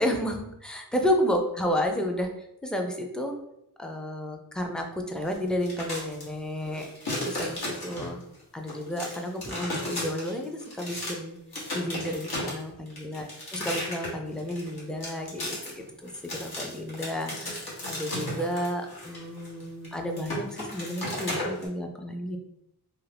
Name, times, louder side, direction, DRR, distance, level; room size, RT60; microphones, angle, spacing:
voice 1, 0.0-2.3 2.6-3.3 3.8-8.2 8.5-11.4 11.7-13.3 13.5-22.4, equal, ahead, 3 dB, 0.4 m, -31 dB
sound 1, 5.5-6.2 6.7-8.3 8.7-11.2 11.5-21.6, left 1 dB, 70° left, 1.0 m, -34 dB
2.5 x 2.4 x 3.3 m, 0.81 s
wide cardioid pair, 65°, 39 cm